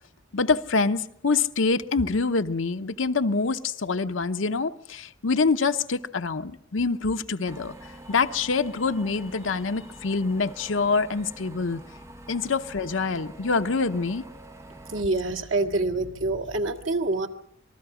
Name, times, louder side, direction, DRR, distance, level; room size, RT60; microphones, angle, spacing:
voice 1, 0.3-7.8 8.1-11.8 12.3-14.2, left 4 dB, 75° left, 0.8 m, -25 dB
sound 1, 7.4-15.0, right 1 dB, 15° right, 1.0 m, -46 dB
voice 2, 14.9-17.3, right 2 dB, 85° right, 1.8 m, -26 dB
26.5 x 20.0 x 5.0 m
head